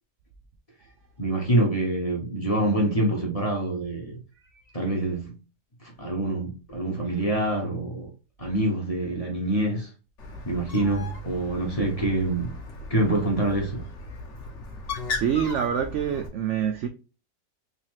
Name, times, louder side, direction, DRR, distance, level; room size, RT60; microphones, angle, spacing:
voice 1, 1.2-4.2 4.7-5.3 5.8-8.1 8.4-9.9 10.4-12.5 12.9-13.9, right 1 dB, 25° left, 0.9 m, -26 dB
Bird, 10.2-16.3, left 3 dB, 50° left, 1.2 m, -37 dB
voice 2, 15.1-16.9, right 8 dB, 80° right, 0.6 m, -26 dB
4.0 x 2.8 x 2.9 m
omnidirectional pair, 1.8 m